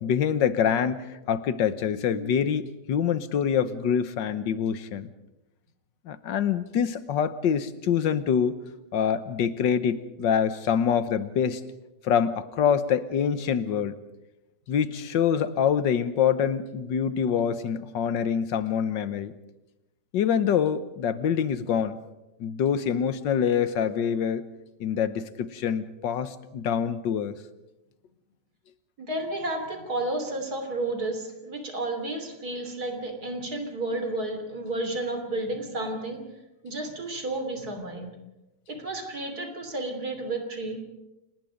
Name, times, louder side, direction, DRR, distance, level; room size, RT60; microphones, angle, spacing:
voice 1, 0.0-5.1 6.1-8.6 8.9-11.6 12.0-13.9 14.7-19.3 20.1-22.0 22.4-24.4 24.8-27.3, left 8 dB, 90° left, 13 dB, 1.7 m, -25 dB
voice 2, 29.0-36.2 36.6-38.1 38.7-40.8, right 2 dB, 60° right, 5 dB, 3.7 m, -32 dB
28.5 x 19.0 x 5.2 m, 0.98 s
omnidirectional pair, 1.9 m